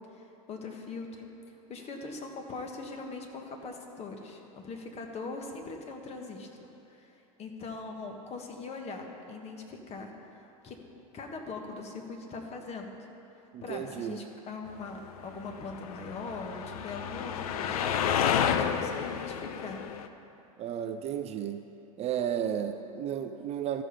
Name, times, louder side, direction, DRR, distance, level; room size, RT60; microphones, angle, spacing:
voice 1, 0.1-1.3 1.7-6.5 6.9-10.8 11.1-12.9 13.6-17.9 18.4-19.8, left 3 dB, 35° left, 3 dB, 1.4 m, -41 dB
voice 2, 13.5-14.2 20.6-21.6 22.0-23.8, right 9 dB, 35° right, 8 dB, 0.5 m, -33 dB
sound 1, 15.4-20.1, left 8 dB, 75° left, 0.6 m, -30 dB
14.0 x 5.3 x 5.6 m, 2.9 s
hypercardioid pair, 100°, 19 cm